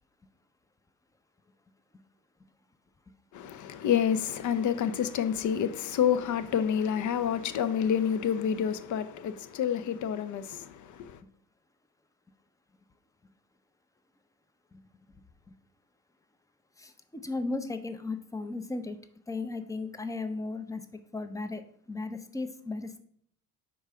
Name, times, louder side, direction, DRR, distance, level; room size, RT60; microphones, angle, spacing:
voice 1, 3.3-11.2, left 8 dB, 40° left, 0.7 m, -28 dB
voice 2, 16.8-19.0 19.3-20.8 21.1-21.6 21.9-23.0, left 3 dB, 10° left, 0.6 m, -35 dB
4.7 x 3.8 x 5.5 m
hypercardioid pair, 60°, 44 cm